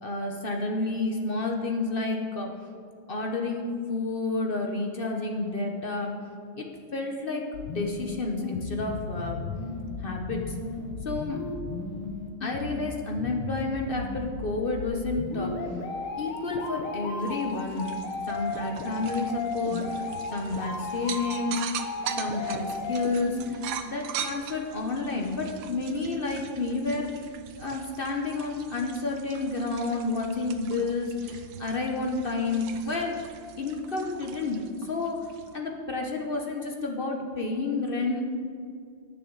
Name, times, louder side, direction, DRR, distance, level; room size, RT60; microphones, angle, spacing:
voice 1, 0.0-2.5 3.1-6.1 6.5-6.7 6.9-9.4 10.0-10.6 11.0-11.4 12.4-15.5 16.2-17.9 18.3-21.6 22.2-27.1 27.6-33.3 33.6-38.2, left 3 dB, 50° left, 1 dB, 0.6 m, -30 dB
sound 1, 7.5-23.5, left 3 dB, 85° left, 1.9 m, -35 dB
sound 2, 17.2-35.6, right 9 dB, 75° right, 1.4 m, -41 dB
19.5 x 7.0 x 4.0 m, 2.3 s
omnidirectional pair, 2.3 m